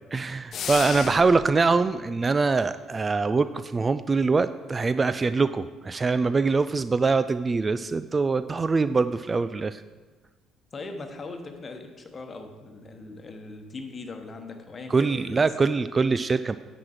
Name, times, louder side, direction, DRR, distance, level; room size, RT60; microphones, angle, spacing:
voice 1, 0.1-9.8 14.9-16.6, right 4 dB, 30° right, 13 dB, 0.3 m, -23 dB
sound 1, 0.5-1.5, left 7 dB, 50° left, 0.6 m, -32 dB
voice 2, 10.7-15.4, left 3 dB, 35° left, 6 dB, 1.2 m, -40 dB
9.3 x 6.1 x 4.9 m, 1.3 s
figure-of-eight pair, 50°, 0 cm